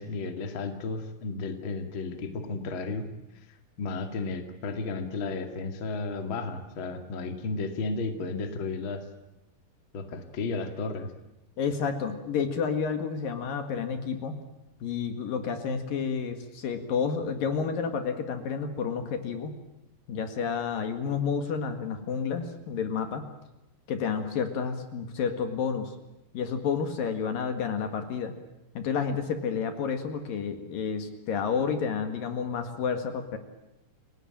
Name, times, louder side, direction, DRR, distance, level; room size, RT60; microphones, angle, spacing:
voice 1, 0.0-3.1 3.8-9.0 9.9-11.1, left 3 dB, 35° left, 6 dB, 2.5 m, -33 dB
voice 2, 11.6-14.4 14.8-19.6 20.1-23.3 23.9-26.0 26.3-28.3 28.8-33.4, left 6 dB, 65° left, 7 dB, 3.4 m, -30 dB
29.5 x 18.5 x 9.0 m, 0.93 s
omnidirectional pair, 4.6 m